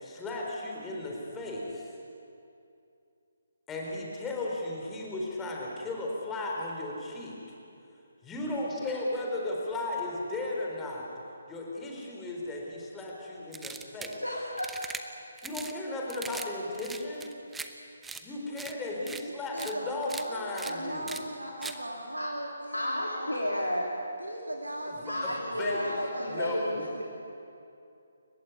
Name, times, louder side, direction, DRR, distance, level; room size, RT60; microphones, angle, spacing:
voice 1, 0.0-1.9 3.7-7.4 8.2-11.1 11.5-14.2 15.4-17.3 18.2-21.2 25.0-25.3 25.6-25.9 26.3-26.9, left 2 dB, 10° left, -2 dB, 4.3 m, -35 dB
sound 1, 13.5-14.2 14.6-15.0 15.4-15.7 16.1-16.5 16.7-17.7 18.0-18.2 18.6-18.7 19.1-19.2 19.6-19.7 20.0-20.2 20.6-20.7 21.1-21.2 21.6-21.8, right 4 dB, 5° right, 1.0 m, -40 dB
voice 2, 14.1-14.7 22.2-22.3 22.7-23.9 25.1-27.0, left 1 dB, 85° left, -1 dB, 3.2 m, -32 dB
voice 3, 19.5-23.7 24.2-26.4 26.8-27.0, right 1 dB, 80° right, 1 dB, 2.5 m, -39 dB
29.5 x 15.5 x 9.6 m, 2.6 s
figure-of-eight pair, 140°, 0 cm